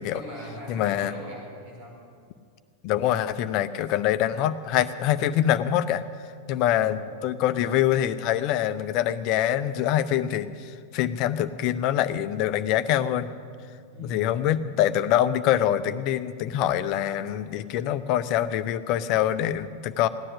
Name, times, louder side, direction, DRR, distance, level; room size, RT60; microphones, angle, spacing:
voice 1, 0.1-2.0 6.6-7.1 13.9-14.4, equal, 45° right, -2 dB, 5.4 m, -41 dB
voice 2, 0.7-1.1 2.8-6.0 6.5-10.5 10.9-13.3 14.0-20.1, left 11 dB, 40° left, 13 dB, 0.7 m, -24 dB
17.0 x 10.0 x 8.2 m, 2.2 s
figure-of-eight pair, 90°, 0 cm